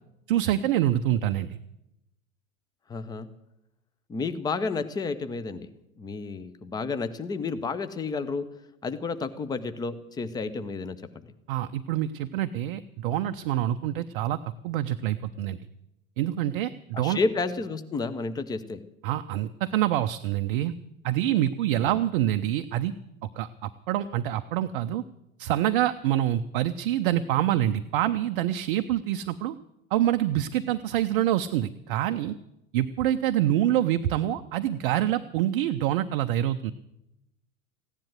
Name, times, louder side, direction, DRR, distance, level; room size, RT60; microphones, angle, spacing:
voice 1, 0.3-1.5 11.5-14.4 14.6-15.6 16.2-17.2 19.0-20.7 21.0-22.9 23.4-25.0 25.4-29.6 29.9-32.3 32.7-36.7, right 12 dB, 40° right, 9 dB, 0.6 m, -26 dB
voice 2, 2.9-3.3 4.1-5.7 6.0-8.5 8.8-11.0 16.9-18.8 21.8-21.9, left 4 dB, 10° left, 11 dB, 0.7 m, -31 dB
15.5 x 10.5 x 8.0 m, 0.86 s
figure-of-eight pair, 90°, 43 cm